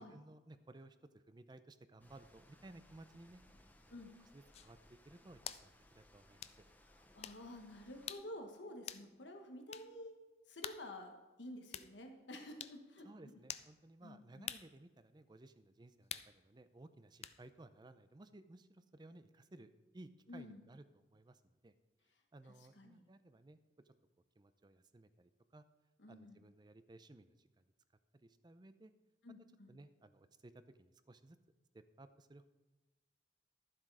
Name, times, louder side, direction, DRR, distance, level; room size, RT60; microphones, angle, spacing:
voice 1, 0.0-3.4 3.9-4.0 4.3-6.5 13.0-21.7 22.3-23.6 23.9-24.0 24.4-25.6 26.1-27.6 28.1-28.9 29.7-31.4 31.7-32.5, right 2 dB, 25° right, 12 dB, 0.5 m, -58 dB
sound 1, 2.0-8.1, left 1 dB, 10° left, 0.8 m, -65 dB
sound 2, 4.5-4.7 5.5-5.7 6.4-6.6 7.2-7.4 8.1-8.3 8.9-9.1 9.7-9.9 10.6-10.8 11.7-11.9 12.6-12.8 13.5-13.7 14.5-14.7 16.1-16.3 17.2-17.4, left 9 dB, 35° left, 0.4 m, -46 dB
voice 2, 6.9-10.2 10.5-11.1 11.4-13.3 14.0-14.5 20.3-20.6 22.8-23.0 26.0-26.4 29.2-29.7, left 1 dB, 90° left, 4 dB, 1.4 m, -51 dB
12.0 x 7.5 x 4.8 m, 1.2 s
head